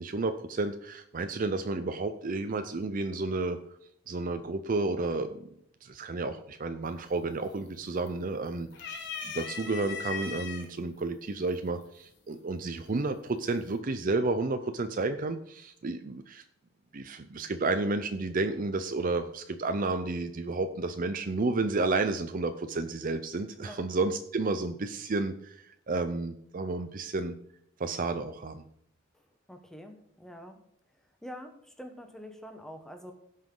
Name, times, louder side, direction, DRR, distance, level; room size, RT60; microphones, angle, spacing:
voice 1, 0.0-3.6 4.1-5.4 5.8-16.4 16.9-27.3 27.8-28.6, right 3 dB, 40° right, 8 dB, 0.5 m, -31 dB
sound 1, 6.9-7.3 7.6-8.3 8.7-10.6 11.5-11.6 12.9-13.3, left 6 dB, 55° left, 1.4 m, -38 dB
voice 2, 29.1-30.6 30.9-33.1, equal, ahead, 5 dB, 1.1 m, -46 dB
16.5 x 5.7 x 3.9 m, 0.69 s
head